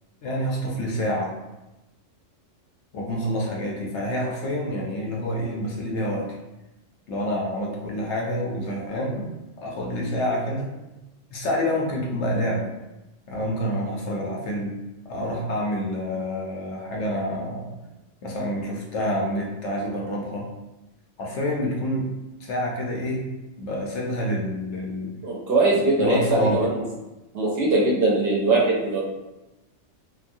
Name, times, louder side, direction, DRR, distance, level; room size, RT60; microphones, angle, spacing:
voice 1, 0.2-1.3 2.9-6.4 7.1-9.3 9.6-10.7 11.3-12.7 13.3-14.8 15.0-17.7 18.2-20.5 21.2-22.1 22.4-23.3 23.6-25.1 25.7-26.7, equal, 70° left, -2 dB, 0.9 m, -27 dB
voice 2, 25.2-26.8 27.3-29.0, right 2 dB, 60° right, -4 dB, 0.7 m, -21 dB
3.0 x 2.2 x 2.5 m, 1.0 s
omnidirectional pair, 1.3 m